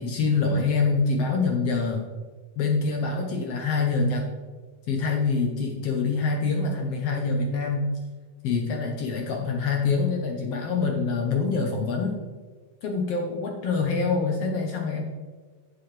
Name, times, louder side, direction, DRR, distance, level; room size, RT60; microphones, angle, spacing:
voice 1, 0.0-2.0 2.6-4.3 4.9-7.9 8.4-12.2 12.8-15.0, left 4 dB, 70° left, 1 dB, 1.5 m, -25 dB
11.0 x 6.0 x 3.2 m, 1.5 s
omnidirectional pair, 3.7 m